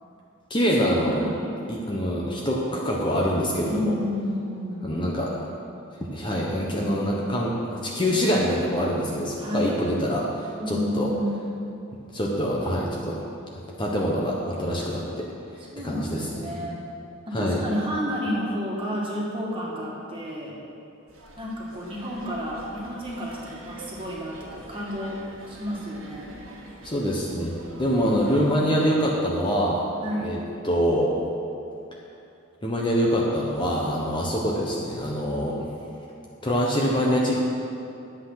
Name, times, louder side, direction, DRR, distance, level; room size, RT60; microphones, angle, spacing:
voice 1, 0.5-1.3 1.7-3.9 4.8-5.4 6.0-11.1 12.1-13.2 13.8-15.3 15.8-16.5 17.3-17.6 26.8-29.8 30.2-30.4 30.6-31.1 32.6-35.7 36.4-37.4, equal, 20° left, -3 dB, 1.0 m, -25 dB
voice 2, 1.2-1.5 3.6-4.9 9.4-9.8 10.6-11.4 15.7-16.9 17.3-20.6 21.4-25.2 25.5-26.3 30.0-30.3, equal, 25° right, -4 dB, 2.0 m, -31 dB
sound 1, 21.1-28.6, right 1 dB, 70° right, 1.7 m, -45 dB
11.5 x 8.1 x 5.8 m, 2.7 s
head